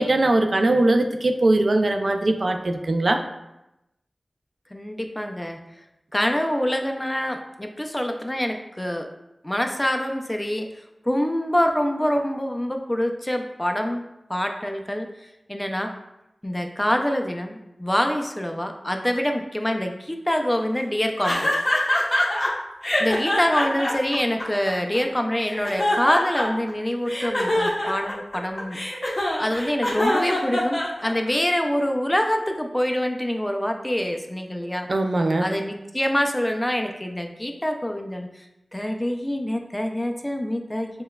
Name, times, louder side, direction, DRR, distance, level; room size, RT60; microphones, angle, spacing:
voice 1, 0.0-3.2 34.9-35.5, right 2 dB, 60° right, 5 dB, 0.3 m, -20 dB
voice 2, 4.7-5.6 6.1-9.1 9.4-10.7 11.1-14.0 14.3-15.1 15.5-15.9 16.4-21.5 23.0-28.8 29.4-34.9 35.4-38.3 38.7-40.9, equal, 15° left, 4 dB, 0.4 m, -25 dB
sound 1, 21.2-22.5 22.8-25.0 25.4-26.7 27.1-31.3, left 1 dB, 40° left, 0.8 m, -24 dB
6.5 x 2.2 x 2.2 m, 0.91 s
wide cardioid pair, 80°, 0 cm